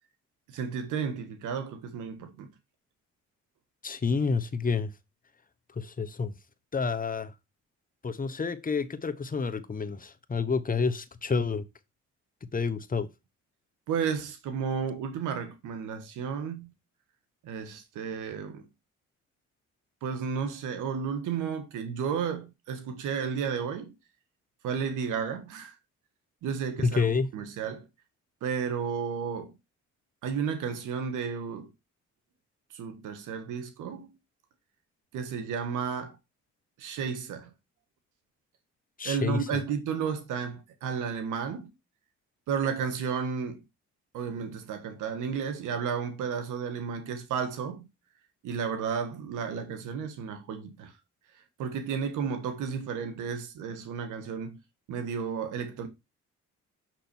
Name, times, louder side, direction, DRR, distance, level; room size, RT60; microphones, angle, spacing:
voice 1, 0.5-2.5 13.9-16.7 17.4-18.7 20.0-23.9 24.6-25.7 26.4-27.1 27.3-27.9 28.4-29.5 30.2-31.7 32.7-34.1 35.1-36.2 36.8-37.5 39.0-41.7 42.5-43.6 44.1-47.9 48.4-50.9 51.6-54.6 54.9-55.9, right 6 dB, 90° right, 1.5 m, -32 dB
voice 2, 3.8-4.9 5.8-6.3 6.7-7.3 8.0-11.6 12.5-13.1 26.8-27.3 39.0-39.4, left 5 dB, 30° left, 1.0 m, -29 dB
6.7 x 6.1 x 4.4 m
cardioid pair, 90°, 30 cm